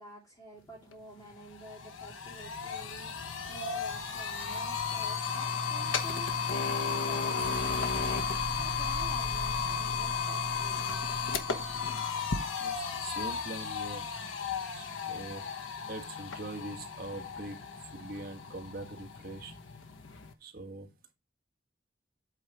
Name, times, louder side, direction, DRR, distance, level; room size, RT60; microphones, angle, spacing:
voice 1, 0.0-11.3, right 2 dB, 20° left, -4 dB, 2.5 m, -50 dB
External Harddisk Starting Up, 0.9-1.0 1.3-20.3, left 5 dB, 85° left, 1.0 m, -34 dB
sound 1, 5.8-12.1, right 3 dB, 85° right, 0.7 m, -44 dB
voice 2, 12.6-14.1 14.7-15.4 15.9-17.6 17.9-19.5 20.4-21.1, right 2 dB, 50° right, 4 dB, 1.4 m, -43 dB
8.3 x 4.0 x 4.6 m, 0.24 s
head